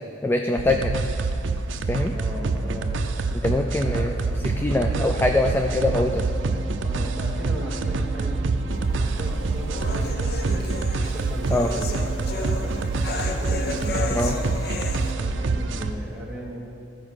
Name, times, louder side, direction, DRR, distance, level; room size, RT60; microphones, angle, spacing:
voice 1, 0.2-1.0 1.9-2.1 3.4-4.1 4.6-6.2 11.5-11.7 14.1-14.4, left 2 dB, 10° left, 4 dB, 0.3 m, -23 dB
sound 1, 0.6-15.9, right 3 dB, 75° right, 0.5 m, -26 dB
voice 2, 2.1-3.0 3.4-4.4 4.6-5.8 6.8-8.5 9.0-14.3 15.1-16.6, equal, 5° right, -5 dB, 1.6 m, -37 dB
sound 2, 8.7-15.1, left 4 dB, 55° left, 0.7 m, -34 dB
13.0 x 4.9 x 6.2 m, 2.6 s
head